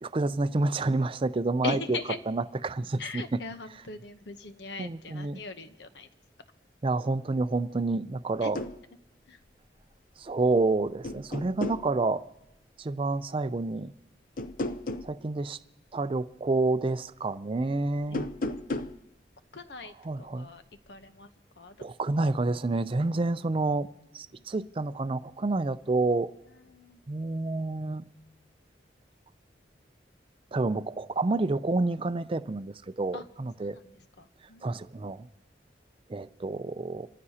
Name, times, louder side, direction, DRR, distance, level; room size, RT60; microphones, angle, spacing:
voice 1, 0.0-2.0 2.3-3.4 4.8-5.4 6.8-8.6 10.2-12.2 12.8-13.9 15.0-15.6 15.9-18.3 20.0-20.5 21.8-23.9 24.1-26.3 27.1-28.0 30.5-33.8 34.6-35.3 36.1-37.1, right 3 dB, 30° right, 0.4 m, -29 dB
voice 2, 1.6-2.2 3.0-6.1 8.4-8.5 9.3-9.4 18.1-18.2 19.5-19.9 20.2-20.6 20.9-21.3 21.6-21.9 22.2-22.3 26.7-27.0 33.1-33.2 33.7-33.8 34.5-34.6, left 4 dB, 80° left, 0.9 m, -39 dB
sound 1, 8.3-8.8 10.3-10.7 11.0-11.9 14.4-15.1 18.0-19.0, left 2 dB, 50° left, 0.6 m, -34 dB
28.0 x 14.5 x 2.8 m
head